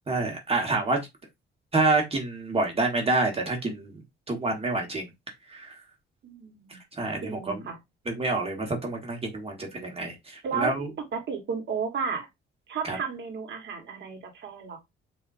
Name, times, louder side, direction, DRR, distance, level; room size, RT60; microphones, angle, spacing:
voice 1, 0.1-1.1 1.7-4.0 4.3-5.1 5.5-5.8 6.7-7.6 8.0-10.9 12.8-13.0, right 3 dB, 30° right, 1.5 m, -28 dB
voice 2, 6.2-6.8 7.2-7.8 10.4-10.7 11.1-12.3 12.7-14.8, right 6 dB, 65° right, 1.6 m, -33 dB
5.2 x 2.8 x 2.6 m
cardioid pair, 90°, 20 cm